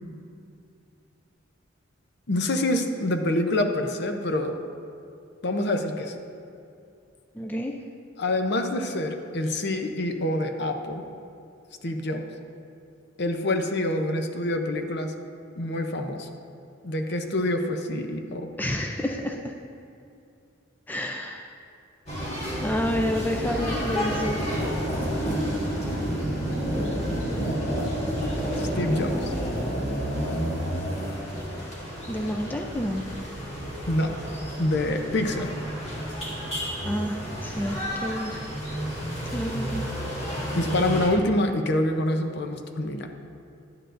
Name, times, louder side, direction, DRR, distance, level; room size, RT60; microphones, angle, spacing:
voice 1, 2.3-4.6 5.4-6.1 8.2-11.0 11.8-12.2 13.2-15.1 15.6-16.3 16.8-18.5 28.6-29.3 33.9-34.1 34.6-35.5 40.5-43.1, left 1 dB, 55° left, 5 dB, 0.6 m, -26 dB
voice 2, 7.4-7.8 18.6-19.5 20.9-21.5 22.6-24.4 32.1-33.0 36.8-38.4 39.3-39.9, equal, 10° left, 2 dB, 0.3 m, -29 dB
sound 1, 22.1-41.1, equal, 35° left, 1.8 m, -30 dB
11.5 x 8.9 x 2.6 m, 2.5 s
head